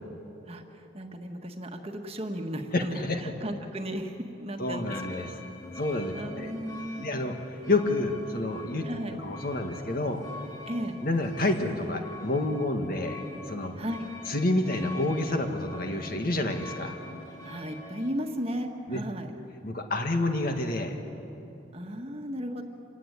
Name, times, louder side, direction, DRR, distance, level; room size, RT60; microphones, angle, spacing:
voice 1, 0.5-4.9 6.1-7.3 8.8-9.2 10.7-10.9 13.8-14.1 17.4-19.3 21.7-22.6, equal, 30° right, 4 dB, 1.6 m, -35 dB
voice 2, 2.7-3.2 4.6-5.3 5.7-6.5 7.0-7.4 7.7-8.9 9.2-10.2 11.0-13.2 13.5-13.7 14.3-16.9 18.9-19.0 19.6-21.0, left 2 dB, 50° left, 4 dB, 1.9 m, -28 dB
sound 1, 4.6-18.1, left 2 dB, 20° left, 6.3 m, -45 dB
27.5 x 16.5 x 10.0 m, 3.0 s
head